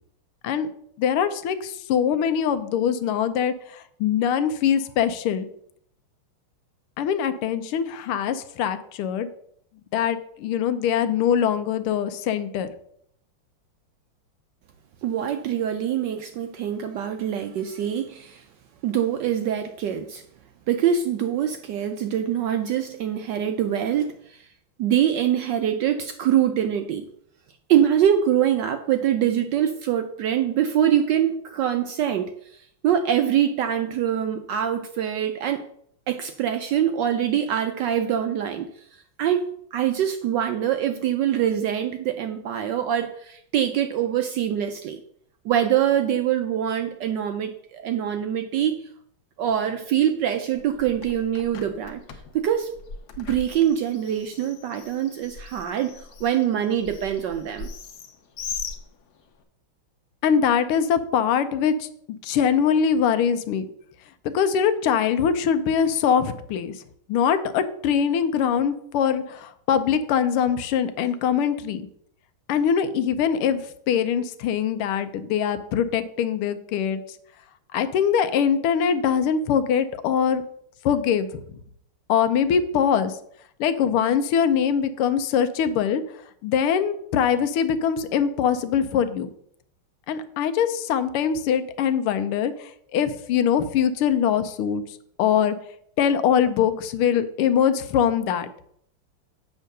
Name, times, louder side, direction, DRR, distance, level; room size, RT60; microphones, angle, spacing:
voice 1, 1.0-5.5 7.0-9.3 9.9-12.7 60.2-63.7 64.3-66.7 67.1-71.8 72.5-73.6 73.9-77.0 77.7-80.4 80.8-81.3 82.1-83.1 83.6-86.0 86.4-89.3 90.1-94.8 95.2-95.6 96.0-98.5, left 8 dB, 85° left, 10 dB, 1.6 m, -23 dB
voice 2, 15.0-18.5 18.8-20.2 20.7-24.5 24.8-27.1 27.7-35.7 36.1-45.0 45.4-48.9 49.4-52.0 52.3-52.7 53.2-57.7, right 10 dB, 75° right, 7 dB, 1.0 m, -24 dB
Bird, 50.5-59.4, left 5 dB, 60° left, 1.3 m, -40 dB
8.3 x 3.6 x 6.4 m, 0.68 s
omnidirectional pair, 2.4 m